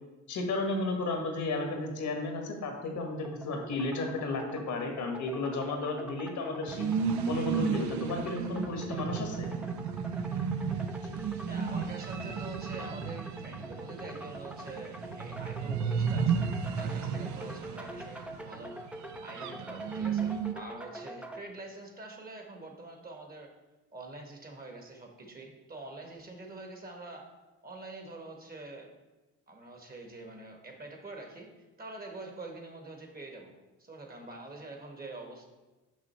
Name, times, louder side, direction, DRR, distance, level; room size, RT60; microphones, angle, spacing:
voice 1, 0.3-6.9 7.3-9.5, left 2 dB, 75° left, 3 dB, 1.5 m, -33 dB
sound 1, 3.2-21.4, right 1 dB, 5° right, 0.5 m, -45 dB
sound 2, 6.7-20.5, right 6 dB, 70° right, 0.6 m, -33 dB
voice 2, 11.5-23.5 23.9-27.3 27.6-28.9 29.5-31.5 31.8-33.5 33.8-35.5, right 2 dB, 30° right, 3 dB, 1.4 m, -46 dB
6.3 x 5.2 x 4.3 m, 1.1 s
cardioid pair, 90°, 30 cm